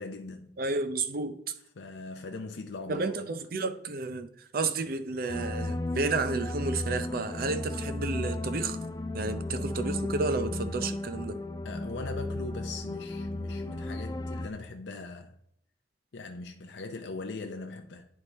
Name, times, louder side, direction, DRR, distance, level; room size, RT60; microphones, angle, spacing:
voice 1, 0.0-0.5 1.8-3.3 11.6-15.3 16.1-18.1, left 3 dB, 80° left, 0.6 m, -40 dB
voice 2, 0.6-1.5 2.9-8.8 9.1-11.4, right 3 dB, 55° right, 0.6 m, -31 dB
sound 1, 5.3-14.5, left 2 dB, 20° left, 0.3 m, -34 dB
9.9 x 3.5 x 4.1 m
head